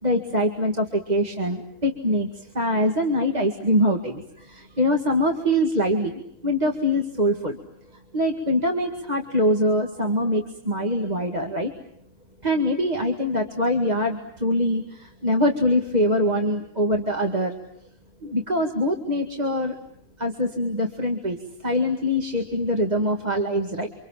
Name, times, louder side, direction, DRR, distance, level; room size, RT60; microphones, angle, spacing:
voice 1, 0.0-7.6 7.9-11.7 12.4-17.5 18.2-19.8 20.2-23.9, equal, 25° right, 3 dB, 2.1 m, -24 dB
28.5 x 26.0 x 7.4 m, 0.71 s
omnidirectional pair, 1.7 m